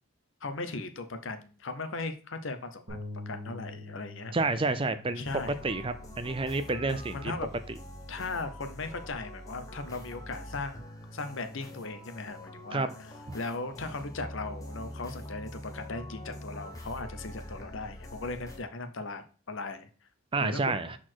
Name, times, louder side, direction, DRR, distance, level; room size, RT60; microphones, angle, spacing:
voice 1, 0.4-4.3 5.2-5.6 6.9-7.5 8.1-19.9 20.4-20.9, left 3 dB, 60° left, 8 dB, 0.8 m, -38 dB
Bass guitar, 2.9-9.1, left 2 dB, 45° right, 3.0 m, -47 dB
voice 2, 4.3-5.3 5.6-7.3 12.7-12.9 20.3-21.0, right 3 dB, 25° right, 12 dB, 0.4 m, -29 dB
sound 1, 5.2-18.6, left 1 dB, 15° left, 1.1 m, -44 dB
6.2 x 4.2 x 4.5 m, 0.38 s
head